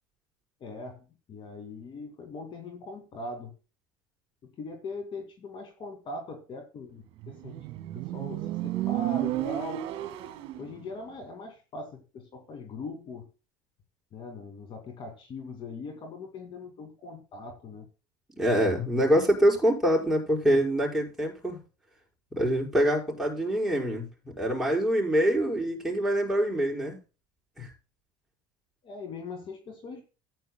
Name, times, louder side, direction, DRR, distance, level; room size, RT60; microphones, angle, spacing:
voice 1, 0.6-3.5 4.4-7.6 7.9-9.8 10.6-13.3 14.1-17.9 19.0-19.1 28.8-30.0, left 3 dB, 45° left, 4 dB, 2.3 m, -41 dB
Motorcycle, 7.2-10.7, right 14 dB, 60° right, 1.8 m, -32 dB
voice 2, 18.4-21.6 22.4-24.1 24.4-27.0 27.6-27.7, equal, 5° right, -3 dB, 5.5 m, -25 dB
14.5 x 9.4 x 2.2 m, 0.32 s
supercardioid pair, 95°, 12 cm